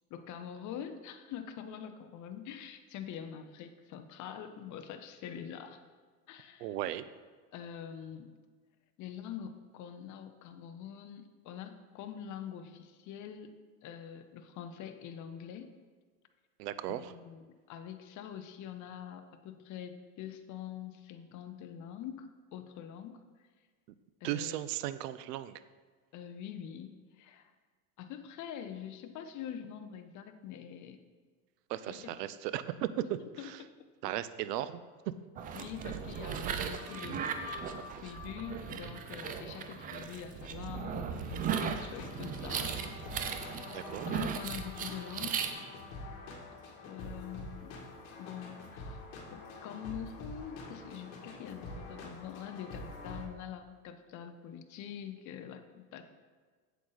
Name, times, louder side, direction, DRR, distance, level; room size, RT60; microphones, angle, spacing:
voice 1, 0.1-5.8 6.3-6.8 7.5-8.3 9.0-13.6 13.8-15.7 16.9-23.3 24.2-24.5 26.1-27.5 28.0-31.0 31.9-32.0 33.0-33.7 35.6-37.3 37.9-42.7 44.1-45.5 46.8-56.0, left 9 dB, 40° left, 8 dB, 0.8 m, -45 dB
voice 2, 6.6-7.0 16.6-17.1 24.2-25.6 31.7-32.9 33.4-33.6 34.0-34.8 43.7-44.1, right 13 dB, 85° right, 14 dB, 0.7 m, -36 dB
sound 1, 35.4-45.5, right 7 dB, 20° right, 0.3 m, -37 dB
sound 2, 36.7-39.4 39.8-39.9 41.3-53.3, left 2 dB, 60° left, 2.4 m, -46 dB
8.2 x 8.0 x 4.0 m, 1.5 s
supercardioid pair, 130°, 47 cm